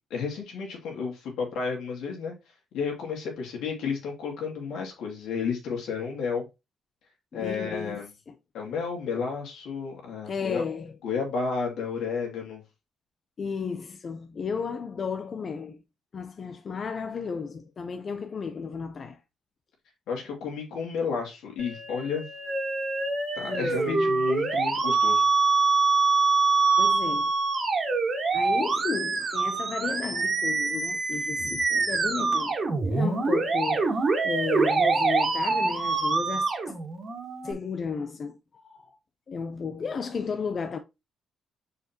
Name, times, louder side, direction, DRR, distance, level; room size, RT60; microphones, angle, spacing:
voice 1, 0.1-2.3 2.7-6.5 7.3-8.1 8.5-10.6 11.0-12.6 20.1-22.3 23.4-25.2, left 5 dB, 85° left, 2.5 m, -32 dB
voice 2, 7.3-8.3 10.3-11.0 13.4-15.8 16.1-19.2 23.5-24.3 26.8-27.3 28.3-32.6 32.8-36.7 37.4-39.0 39.3-40.8, left 5 dB, 45° left, 0.7 m, -34 dB
Musical instrument, 21.6-37.5, right 4 dB, 40° right, 1.8 m, -25 dB
6.6 x 5.0 x 3.0 m
cardioid pair, 90°, 0 cm